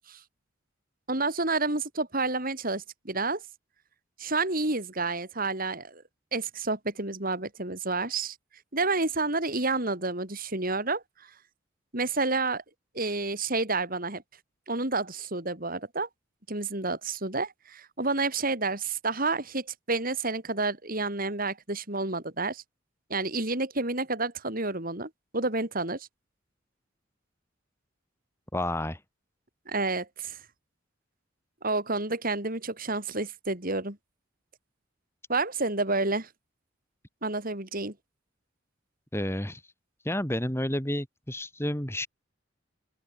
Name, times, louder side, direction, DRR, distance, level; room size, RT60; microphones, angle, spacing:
voice 1, 1.1-3.4 4.2-6.0 6.3-8.4 8.7-11.3 11.9-12.6 12.9-14.2 14.7-16.1 16.5-22.6 23.1-26.1 29.7-30.4 31.6-34.0 35.3-36.3 37.2-37.9, right 3 dB, 45° right, 4.9 m, -29 dB
voice 2, 28.5-29.0 39.1-39.6 40.0-42.1, left 1 dB, 15° left, 4.4 m, -30 dB
open air
head